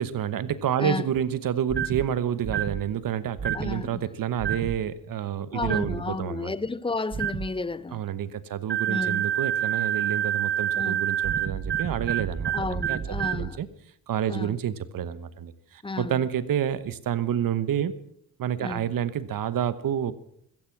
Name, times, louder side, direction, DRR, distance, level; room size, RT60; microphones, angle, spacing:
voice 1, 0.0-6.5 7.9-13.7 14.1-17.9 18.4-20.1, right 9 dB, 65° right, 1.1 m, -29 dB
sound 1, 1.7-2.1 2.4-2.8 3.4-3.7 4.4-4.8 5.6-6.0 7.1-7.5 8.7-13.5, right 9 dB, 30° right, 0.9 m, -28 dB
voice 2, 3.5-4.0 5.5-8.0 8.9-9.2 10.7-11.0 12.5-13.6 14.3-14.6 15.8-16.2 18.6-18.9, left 3 dB, 15° left, 0.5 m, -32 dB
15.5 x 15.0 x 6.0 m
cardioid pair, 120°, 36 cm